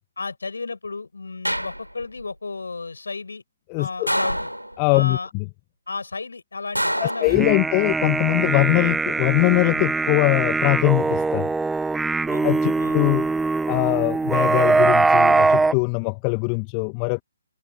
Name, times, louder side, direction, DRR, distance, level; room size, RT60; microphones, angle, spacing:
voice 1, 0.2-3.4 3.8-4.5 4.9-5.3 5.9-7.7 12.3-12.5 12.8-13.0, left 4 dB, 65° left, 7.9 m, -33 dB
sound 1, 1.4-2.2 4.1-5.0 6.7-7.9 9.3-9.8, equal, 90° right, 6.1 m, -27 dB
voice 2, 3.7-4.1 4.8-5.4 7.0-11.5 12.4-13.3 13.7-17.2, left 40 dB or more, 20° left, 1.6 m, -22 dB
sound 2, 7.3-15.7, right 3 dB, 5° right, 0.7 m, -21 dB
figure-of-eight pair, 135°, 0 cm